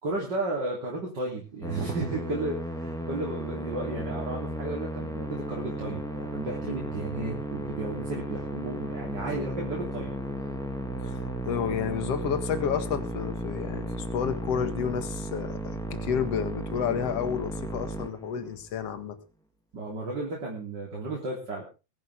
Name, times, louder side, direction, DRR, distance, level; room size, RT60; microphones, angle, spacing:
voice 1, 0.0-10.1 19.7-21.7, right 2 dB, 25° right, -2 dB, 3.3 m, -33 dB
Musical instrument, 1.6-18.7, right 1 dB, ahead, 1.0 m, -34 dB
voice 2, 11.0-19.2, left 7 dB, 50° left, 8 dB, 2.0 m, -31 dB
21.5 x 11.0 x 3.6 m, 0.32 s
omnidirectional pair, 5.0 m